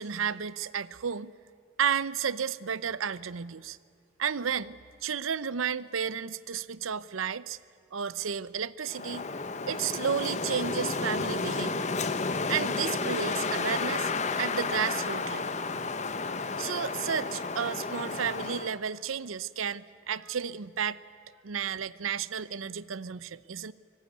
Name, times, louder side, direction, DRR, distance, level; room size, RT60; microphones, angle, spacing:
voice 1, 0.0-1.3 1.8-3.8 4.2-7.6 7.9-9.2 9.7-11.9 12.5-14.1 14.4-15.9 16.6-21.0 21.4-23.7, right 7 dB, 90° right, 18 dB, 0.6 m, -32 dB
Wind, 8.9-18.8, left 4 dB, 35° left, 0.9 m, -32 dB
24.5 x 19.0 x 9.5 m, 2.1 s
head